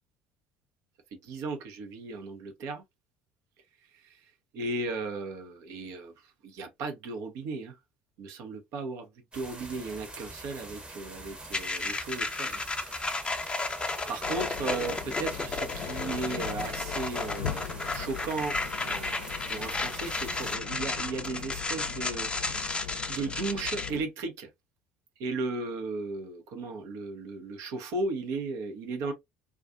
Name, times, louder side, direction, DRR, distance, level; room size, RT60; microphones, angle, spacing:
voice 1, 1.1-2.8 3.9-7.8 8.2-12.6 14.1-24.5 25.2-29.1, right 3 dB, 60° right, 0.8 m, -36 dB
sound 1, 9.3-20.6, right 2 dB, 20° right, 0.9 m, -45 dB
sound 2, 11.5-23.9, left 3 dB, 15° left, 0.6 m, -33 dB
sound 3, 14.2-24.0, left 9 dB, 65° left, 0.5 m, -40 dB
2.4 x 2.3 x 2.4 m
hypercardioid pair, 60°, 6 cm